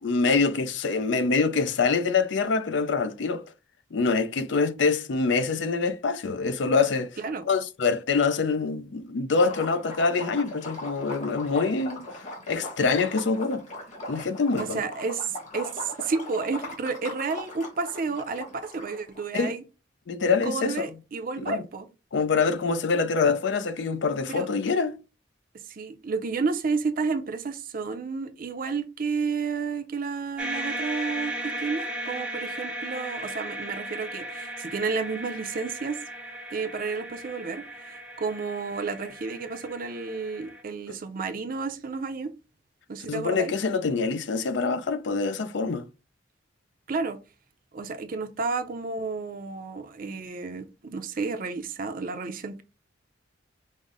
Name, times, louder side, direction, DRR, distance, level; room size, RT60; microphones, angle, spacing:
voice 1, 0.0-3.4 3.9-7.2 7.5-13.6 14.1-14.8 19.3-19.5 20.1-20.7 21.4-21.6 22.1-25.0 43.1-45.8, left 4 dB, 70° left, 0.5 m, -25 dB
Liquid, 9.4-19.2, left 1 dB, 40° left, 1.5 m, -40 dB
voice 2, 14.6-19.6 20.4-21.9 24.3-24.5 25.7-36.0 36.5-42.3 42.9-43.5 46.9-47.2 47.7-52.6, right 4 dB, 45° right, 0.5 m, -31 dB
sound 1, 30.4-40.6, right 1 dB, 5° right, 0.6 m, -36 dB
5.3 x 2.1 x 3.6 m
head